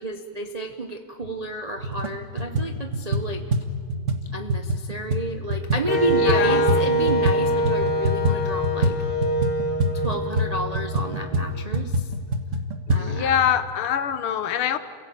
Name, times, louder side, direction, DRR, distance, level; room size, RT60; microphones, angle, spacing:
voice 1, 0.0-3.4 4.3-9.0 9.9-12.1 12.9-13.4, right 2 dB, 65° right, 5 dB, 0.4 m, -30 dB
sound 1, 1.2-1.3 1.8-2.1 2.4-7.4 7.6-13.0, right 1 dB, 40° right, 1.6 m, -25 dB
Wind instrument woodwind instrument, 5.9-11.7, equal, 30° left, 2.5 m, -25 dB
voice 2, 6.2-6.9 12.9-14.8, left 9 dB, 80° left, 12 dB, 1.9 m, -24 dB
29.0 x 16.0 x 8.5 m, 2.1 s
omnidirectional pair, 2.4 m